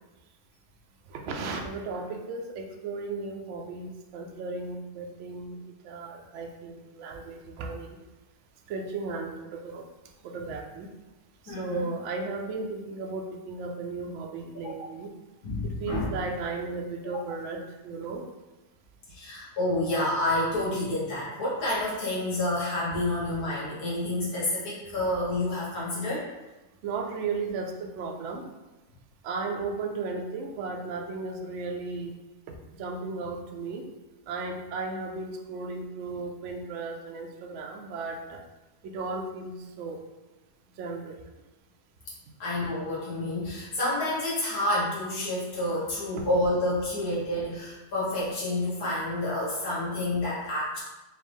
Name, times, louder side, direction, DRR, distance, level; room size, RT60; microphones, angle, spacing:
voice 1, 1.1-5.6 5.8-8.0 8.7-9.8 10.2-10.9 11.4-15.1 15.6-18.2 26.8-28.5 29.2-32.1 32.5-33.9 34.3-38.4 38.8-40.0 40.8-41.2, right 3 dB, 65° right, 2 dB, 0.8 m, -35 dB
voice 2, 11.5-11.9 14.6-14.9 15.4-16.2 17.1-17.2 19.1-26.3 42.4-50.8, left 1 dB, 90° left, -8 dB, 1.8 m, -29 dB
4.3 x 2.5 x 3.4 m, 1.1 s
omnidirectional pair, 1.6 m